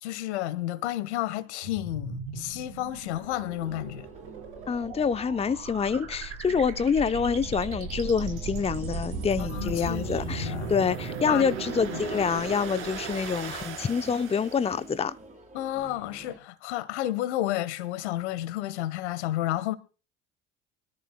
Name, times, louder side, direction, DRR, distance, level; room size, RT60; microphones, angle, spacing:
voice 1, 0.0-4.1 9.4-10.7 11.3-11.5 11.8-12.0 15.5-19.7, left 14 dB, 80° left, 1.5 m, -31 dB
sound 1, 1.6-15.0, right 5 dB, 80° right, 4.5 m, -37 dB
sound 2, 3.1-16.4, right 3 dB, 20° right, 6.9 m, -47 dB
voice 2, 4.7-15.1, left 6 dB, 20° left, 0.7 m, -27 dB
24.5 x 13.5 x 2.2 m
hypercardioid pair, 70°, 34 cm